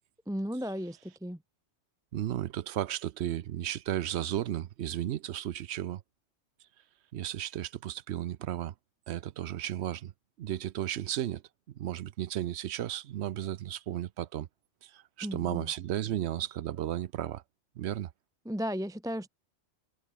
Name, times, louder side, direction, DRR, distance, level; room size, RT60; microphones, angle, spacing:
voice 1, 0.3-1.4 15.2-15.7 18.4-19.3, equal, 5° right, 0.8 m, -35 dB
voice 2, 2.1-6.0 7.1-8.7 9.1-10.1 10.4-11.4 11.8-14.5 14.8-17.4 17.8-18.1, right 11 dB, 75° right, 0.9 m, -34 dB
omnidirectional pair, 1.2 m